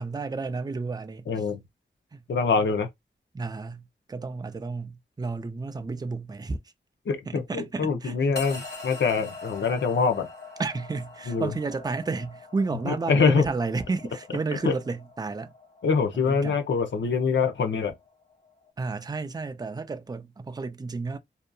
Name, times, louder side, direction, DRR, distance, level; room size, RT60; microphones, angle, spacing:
voice 1, 0.0-1.3 2.1-2.2 3.3-6.6 7.3-8.2 10.6-15.5 16.2-16.6 18.8-21.2, right 4 dB, 20° right, 0.4 m, -32 dB
voice 2, 1.3-1.6 2.3-2.9 7.1-10.3 11.3-11.5 12.9-13.4 14.6-14.7 15.8-17.9, left 5 dB, 80° left, 0.6 m, -24 dB
sound 1, 8.3-18.7, left 3 dB, 65° left, 1.2 m, -44 dB
2.7 x 2.4 x 2.2 m
wide cardioid pair, 65°, 19 cm